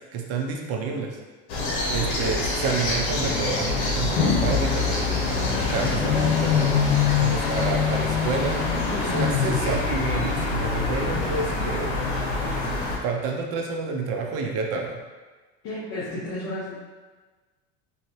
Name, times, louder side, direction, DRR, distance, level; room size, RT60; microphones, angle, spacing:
voice 1, 0.1-1.2 1.9-6.7 7.1-8.6 9.1-11.9 12.5-12.7 13.0-15.0, right 4 dB, 45° right, 1 dB, 0.6 m, -29 dB
sound 1, 1.5-13.0, left 4 dB, 85° left, 1.0 m, -24 dB
voice 2, 8.9-9.3 15.6-16.8, left 1 dB, 45° left, -9 dB, 0.9 m, -32 dB
3.7 x 2.8 x 3.0 m, 1.3 s
cardioid pair, 155°, 32 cm